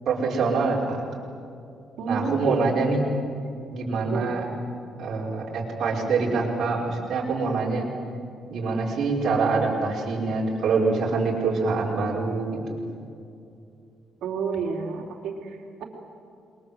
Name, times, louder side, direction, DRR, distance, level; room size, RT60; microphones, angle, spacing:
voice 1, 0.1-1.0 2.1-3.1 3.7-4.5 5.0-7.9 8.5-12.8, right 4 dB, 50° right, -3 dB, 5.3 m, -25 dB
voice 2, 2.0-2.6 4.1-4.3 14.2-15.8, right 5 dB, 75° right, 2 dB, 3.7 m, -30 dB
28.5 x 22.5 x 7.9 m, 2.6 s
cardioid pair, 180°, 0 cm